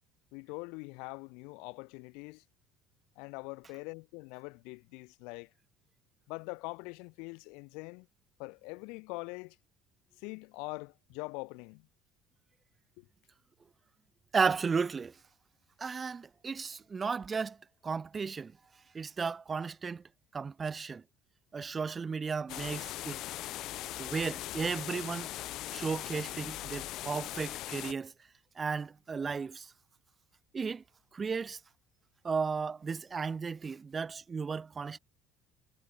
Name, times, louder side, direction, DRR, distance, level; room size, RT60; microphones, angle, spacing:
voice 1, 0.3-2.4 3.2-5.5 6.3-8.1 8.4-9.6 10.2-11.9 13.0-13.1, left 30 dB, 80° left, 0.9 m, -43 dB
voice 2, 14.3-15.1 15.8-17.6 17.8-18.5 18.9-20.0 20.3-21.0 21.5-23.2 24.0-25.3 25.7-28.1 28.6-29.7 30.5-30.8 31.1-31.6 32.2-35.0, right 5 dB, 25° right, 0.5 m, -34 dB
sound 1, 22.5-27.9, left 15 dB, 60° left, 0.5 m, -40 dB
cardioid pair, 115°, 0 cm